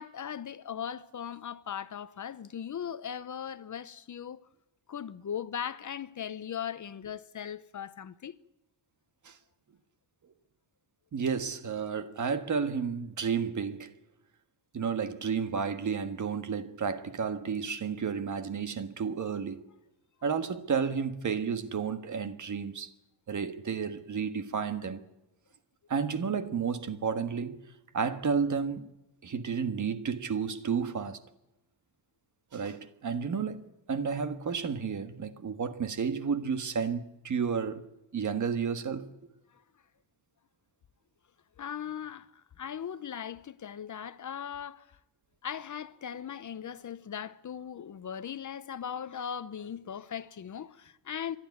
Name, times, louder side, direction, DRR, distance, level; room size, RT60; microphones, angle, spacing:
voice 1, 0.0-4.4 4.9-8.3 41.6-44.9 45.4-51.4, left 8 dB, 45° left, 0.8 m, -39 dB
voice 2, 11.1-13.9 14.7-19.6 20.2-22.9 23.3-25.0 25.9-27.6 27.9-28.9 29.2-31.2 32.5-37.9 38.1-39.1, right 6 dB, 40° right, 1.5 m, -32 dB
28.0 x 12.5 x 9.4 m
wide cardioid pair, 155°, 44 cm